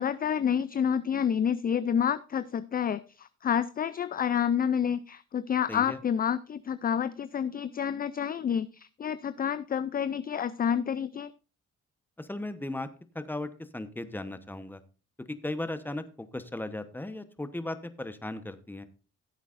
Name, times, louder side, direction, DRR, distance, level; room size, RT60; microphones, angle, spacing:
voice 1, 0.0-11.3, left 8 dB, 30° left, 14 dB, 0.4 m, -29 dB
voice 2, 5.7-6.0 12.2-12.9 13.1-14.8 15.4-18.9, left 2 dB, 5° left, 11 dB, 1.0 m, -36 dB
15.0 x 8.0 x 2.6 m, 0.34 s
cardioid pair, 90°, 30 cm